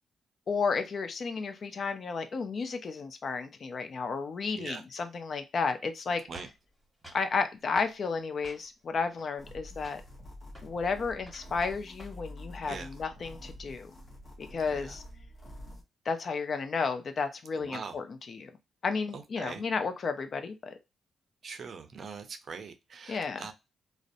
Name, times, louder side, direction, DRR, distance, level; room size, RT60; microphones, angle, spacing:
voice 1, 0.5-6.2 7.1-10.0 10.6-13.9 14.4-15.0 16.1-18.5 18.8-20.7 23.1-23.4, left 5 dB, 55° left, 8 dB, 0.5 m, -32 dB
sound 1, 6.3-7.3 7.8-8.0 8.4-8.9 9.2-9.6 9.8-10.1 10.5-10.7 11.2-12.3 12.5-12.9, equal, ahead, 1.2 m, -52 dB
sound 2, 9.4-15.8, left 1 dB, 35° left, 0.8 m, -47 dB
voice 2, 17.5-18.0 19.1-19.6 21.4-23.5, right 5 dB, 55° right, 8 dB, 0.5 m, -42 dB
2.6 x 2.0 x 2.5 m, 0.24 s
cardioid pair, 75°, 0 cm